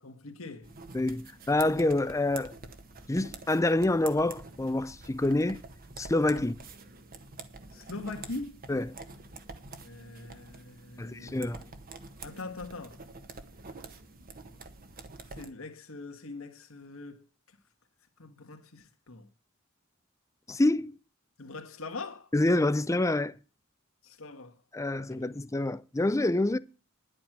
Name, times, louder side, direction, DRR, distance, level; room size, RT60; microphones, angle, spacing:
voice 1, 0.0-0.7 7.7-8.6 9.8-11.4 12.2-13.0 15.3-17.6 18.2-19.3 21.4-22.3 24.0-24.6 25.0-25.3, left 3 dB, 85° left, 1.8 m, -42 dB
sound 1, 0.6-15.5, right 3 dB, 45° right, 1.4 m, -47 dB
voice 2, 0.9-2.5 3.1-5.6 6.0-6.5 8.7-8.9 11.0-11.6 20.5-20.9 22.3-23.4 24.7-26.6, left 2 dB, 15° left, 0.5 m, -27 dB
10.5 x 8.6 x 6.1 m
head